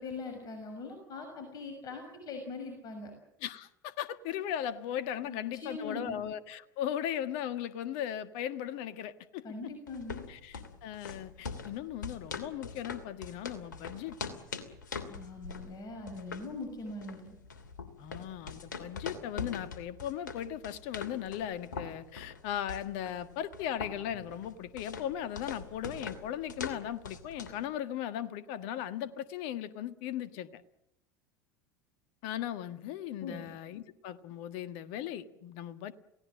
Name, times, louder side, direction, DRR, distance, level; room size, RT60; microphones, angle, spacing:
voice 1, 0.0-3.1 5.3-6.2 9.4-10.3 15.1-17.3 33.2-33.5, left 3 dB, 40° left, 6.3 m, -42 dB
voice 2, 3.4-9.4 10.3-14.2 18.0-30.6 32.2-35.9, left 10 dB, 55° left, 1.5 m, -37 dB
sound 1, 9.9-27.7, left 5 dB, 75° left, 2.8 m, -43 dB
29.5 x 17.5 x 7.6 m
figure-of-eight pair, 75°, 10 cm